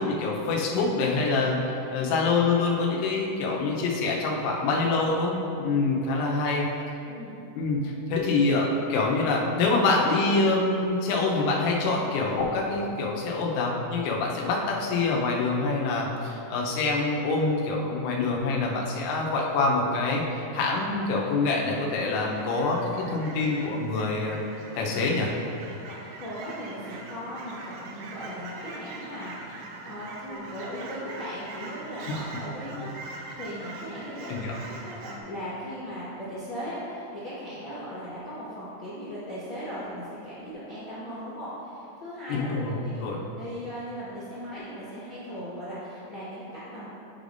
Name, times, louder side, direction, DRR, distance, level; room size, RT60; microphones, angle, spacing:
voice 1, 0.0-1.6 1.9-6.7 7.5-7.8 8.1-24.5 24.8-25.3 34.3-34.6 42.3-43.2, left 3 dB, 90° left, -2 dB, 3.2 m, -25 dB
voice 2, 1.8-2.1 6.1-6.3 7.0-7.4 25.8-43.0 43.4-46.9, equal, 60° left, -12 dB, 1.3 m, -38 dB
Fowl / Chirp tweet, 20.5-35.2, right 3 dB, 85° right, 2.2 m, -43 dB
10.5 x 4.9 x 2.6 m, 2.8 s
omnidirectional pair, 5.1 m